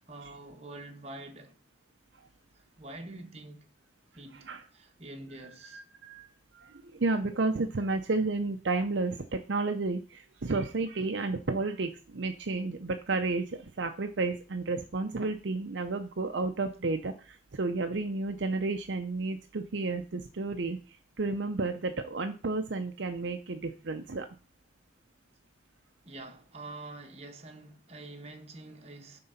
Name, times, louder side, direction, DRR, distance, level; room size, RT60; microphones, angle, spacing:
voice 1, 0.0-1.6 2.5-3.7 4.1-5.8 26.0-29.2, right 2 dB, 35° right, 1.3 m, -46 dB
voice 2, 5.7-6.3 6.5-24.3, right 3 dB, 65° right, 0.6 m, -32 dB
9.5 x 3.8 x 5.7 m
head